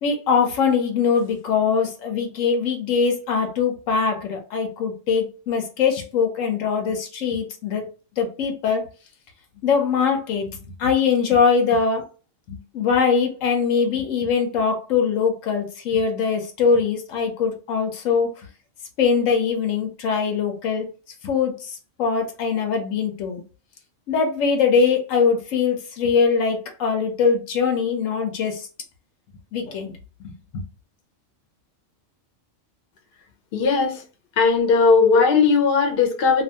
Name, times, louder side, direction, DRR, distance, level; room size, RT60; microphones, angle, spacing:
voice 1, 0.0-7.8 8.2-8.9 9.6-10.5 10.8-12.0 12.5-18.3 19.0-20.9 21.2-23.4 24.1-28.7 29.5-29.9 30.2-30.3, left 5 dB, 85° left, 4 dB, 1.1 m, -22 dB
voice 2, 33.5-34.0 34.4-36.4, left 4 dB, 55° left, 3 dB, 0.8 m, -17 dB
2.6 x 2.5 x 2.7 m, 0.35 s
omnidirectional pair, 1.3 m